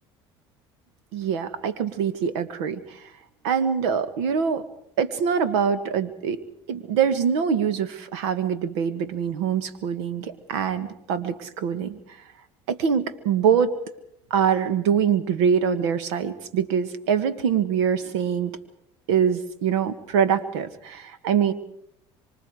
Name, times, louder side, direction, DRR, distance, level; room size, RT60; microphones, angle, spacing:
voice 1, 1.1-3.0 3.4-4.6 5.0-6.4 6.7-12.0 12.7-13.7 14.3-18.5 19.1-21.5, right 7 dB, 80° right, 12 dB, 1.7 m, -24 dB
25.5 x 25.0 x 4.9 m, 0.77 s
hypercardioid pair, 75°, 14 cm